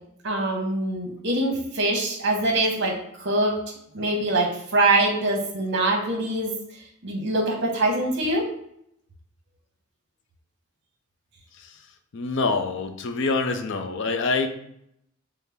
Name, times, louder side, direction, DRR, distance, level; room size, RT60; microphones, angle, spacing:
voice 1, 0.2-3.5 3.9-6.5 7.0-8.4, right 2 dB, 55° right, 1 dB, 0.9 m, -24 dB
voice 2, 12.1-14.5, left 3 dB, 55° left, 6 dB, 0.4 m, -26 dB
5.6 x 2.0 x 3.4 m, 0.74 s
head